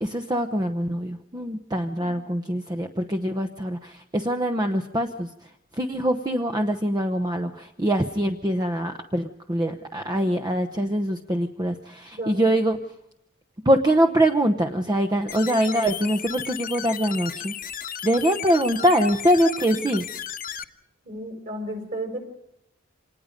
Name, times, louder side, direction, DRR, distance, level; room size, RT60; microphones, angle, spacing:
voice 1, 0.0-12.8 13.6-17.5 18.0-20.0, equal, 20° right, 6 dB, 0.9 m, -24 dB
sound 1, 15.3-20.6, left 8 dB, 45° left, 1.0 m, -34 dB
voice 2, 21.0-22.2, right 1 dB, 45° right, 3 dB, 6.1 m, -33 dB
26.5 x 19.5 x 5.2 m, 0.81 s
head